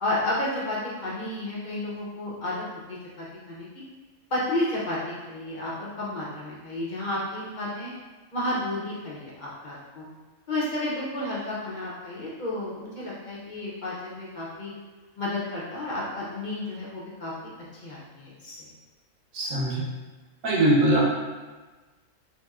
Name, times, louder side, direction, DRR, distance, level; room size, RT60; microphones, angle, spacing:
voice 1, 0.0-3.7 4.3-7.9 8.3-10.1 10.5-14.7 15.2-17.3 17.8-18.7, left 1 dB, 60° left, -6 dB, 0.5 m, -31 dB
voice 2, 19.3-19.8 20.4-21.0, right 1 dB, 75° right, -4 dB, 1.2 m, -21 dB
3.0 x 2.9 x 2.3 m, 1.3 s
omnidirectional pair, 1.5 m